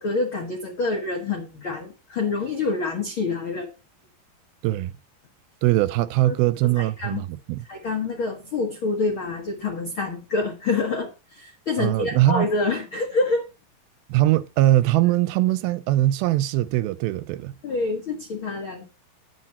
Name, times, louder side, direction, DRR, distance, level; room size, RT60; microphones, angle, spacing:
voice 1, 0.0-3.7 6.2-6.4 6.8-7.3 7.6-13.5 17.6-18.9, left 3 dB, 65° left, 1.2 m, -27 dB
voice 2, 5.6-7.6 11.8-12.5 14.1-17.5, right 15 dB, 80° right, 2.3 m, -21 dB
9.9 x 7.6 x 4.1 m
omnidirectional pair, 4.4 m